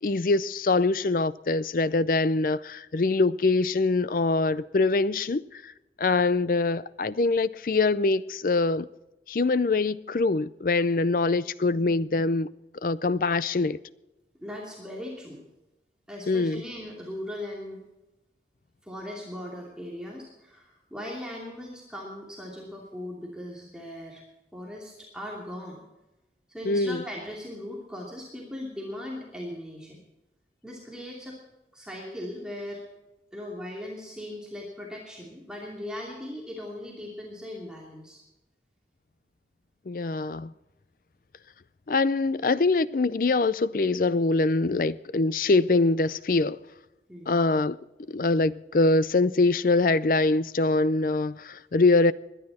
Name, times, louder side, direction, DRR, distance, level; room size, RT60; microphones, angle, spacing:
voice 1, 0.0-5.7 6.0-8.9 9.3-12.5 12.8-13.8 16.3-16.6 26.6-27.0 39.9-40.5 41.9-46.6 47.3-47.8 48.1-52.1, left 3 dB, 50° left, 0.5 m, -24 dB
voice 2, 11.6-11.9 14.4-15.4 16.1-17.8 18.8-24.2 24.5-25.8 26.5-30.0 30.6-31.4 31.7-32.8 33.3-38.2 44.6-44.8 47.1-47.4, left 1 dB, 5° right, 2.7 m, -39 dB
21.0 x 11.0 x 4.3 m
head